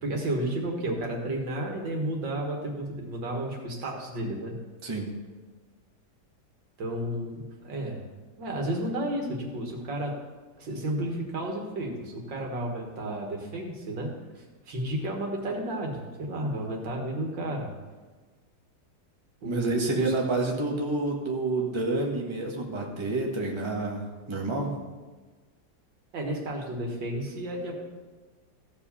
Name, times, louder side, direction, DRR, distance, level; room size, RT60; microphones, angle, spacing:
voice 1, 0.0-4.5 6.8-8.0 8.4-10.1 10.6-17.7 19.4-20.1 26.1-27.8, right 1 dB, 80° right, 1 dB, 2.4 m, -32 dB
voice 2, 4.8-5.2 19.4-24.8, right 2 dB, 15° right, -1 dB, 1.4 m, -29 dB
14.5 x 4.9 x 7.0 m, 1.3 s
omnidirectional pair, 2.0 m